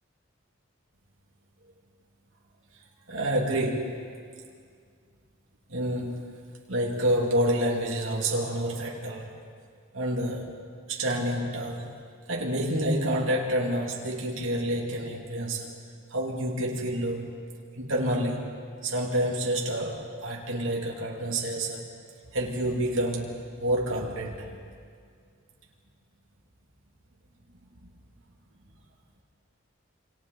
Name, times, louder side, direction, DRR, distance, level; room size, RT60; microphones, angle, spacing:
voice 1, 3.1-4.1 5.7-6.3 6.7-9.3 9.9-10.5 10.9-11.9 12.3-15.7 16.1-17.3 17.8-18.5 18.8-21.9 22.3-24.5, right 1 dB, 75° right, -2 dB, 2.7 m, -28 dB
27.0 x 26.5 x 4.1 m, 2.1 s
head